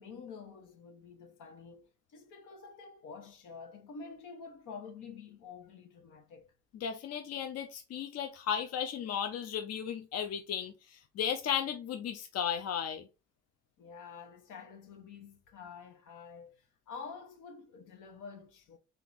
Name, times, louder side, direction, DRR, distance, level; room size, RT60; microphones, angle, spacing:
voice 1, 0.0-6.5 13.8-18.8, left 5 dB, 85° left, 1.1 m, -48 dB
voice 2, 6.7-13.1, left 8 dB, 55° left, 0.6 m, -35 dB
3.5 x 2.9 x 3.9 m
cardioid pair, 90°, 30 cm